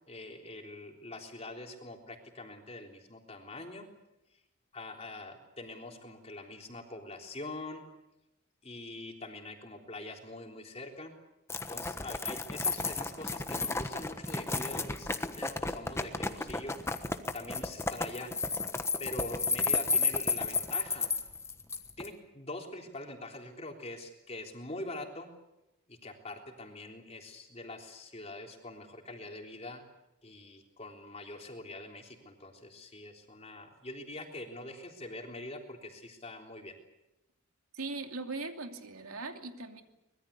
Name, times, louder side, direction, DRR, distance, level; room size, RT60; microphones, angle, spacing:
voice 1, 0.1-3.9 4.7-7.8 8.6-11.1 11.7-18.3 19.0-21.1 22.0-25.3 25.9-29.8 30.2-36.7, left 2 dB, 30° left, 3 dB, 3.5 m, -44 dB
sound 1, 11.5-22.1, left 4 dB, 10° left, 1.2 m, -32 dB
voice 2, 37.7-39.8, right 3 dB, 90° right, 5 dB, 2.8 m, -39 dB
24.5 x 21.5 x 8.3 m, 0.90 s
head